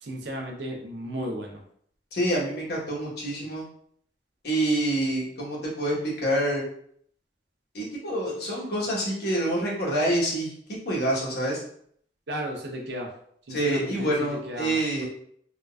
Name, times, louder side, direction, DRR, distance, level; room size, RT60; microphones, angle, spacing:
voice 1, 0.0-1.6 12.3-13.1 13.5-15.1, right 1 dB, 75° right, 1 dB, 0.7 m, -34 dB
voice 2, 2.1-3.6 4.4-6.6 7.7-10.5 10.8-11.6 13.5-15.1, right 1 dB, 65° left, -4 dB, 1.1 m, -27 dB
3.7 x 2.3 x 2.3 m, 0.64 s
head